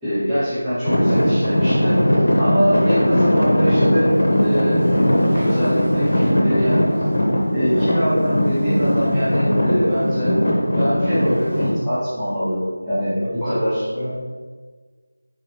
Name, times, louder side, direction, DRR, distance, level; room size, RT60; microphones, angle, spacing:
voice 1, 0.0-4.8 5.3-6.8 7.5-10.3 10.7-12.6 12.8-13.9, equal, 5° right, -19 dB, 1.1 m, -23 dB
Traffic noise roadway noise / Engine, 0.9-11.7, equal, 70° left, 1.0 m, -19 dB
voice 2, 13.1-14.1, left 1 dB, 40° left, -9 dB, 1.4 m, -30 dB
4.0 x 3.2 x 2.8 m, 1.5 s
figure-of-eight pair, 170°, 0 cm